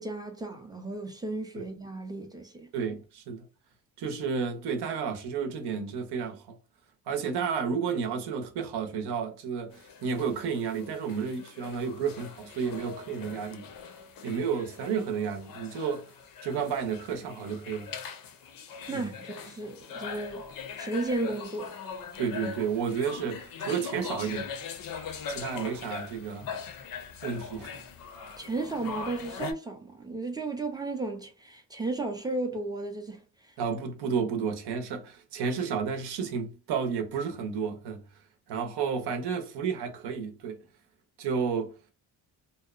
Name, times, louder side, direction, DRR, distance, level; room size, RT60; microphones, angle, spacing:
voice 1, 0.0-2.7 18.9-20.5 20.8-21.7 28.4-33.2, right 2 dB, 10° right, 0.4 m, -34 dB
voice 2, 2.7-3.4 4.0-6.6 7.1-13.7 14.2-16.1 16.4-17.9 18.9-19.1 22.2-24.5 25.3-26.5 27.2-27.8 33.6-38.0 38.5-40.6 41.2-41.7, right 6 dB, 70° right, 0.7 m, -31 dB
sound 1, 9.7-29.5, left 6 dB, 55° left, 0.5 m, -41 dB
2.7 x 2.1 x 2.3 m
cardioid pair, 120°, 41 cm